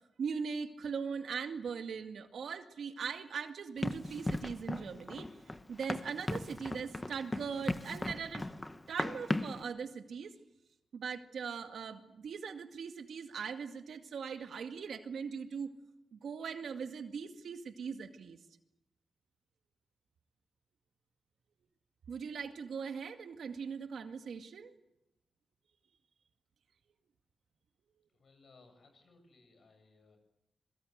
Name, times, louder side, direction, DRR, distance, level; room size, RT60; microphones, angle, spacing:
voice 1, 0.2-5.3 5.7-8.4 8.9-10.3 10.9-15.7 16.1-18.4 22.1-24.7, right 6 dB, 80° right, 7 dB, 2.1 m, -40 dB
Run, 3.8-9.6, left 2 dB, 15° left, 1.3 m, -37 dB
voice 2, 28.1-30.2, left 3 dB, 55° left, 6 dB, 8.0 m, -63 dB
27.0 x 23.0 x 8.2 m, 0.87 s
wide cardioid pair, 150°, 0 cm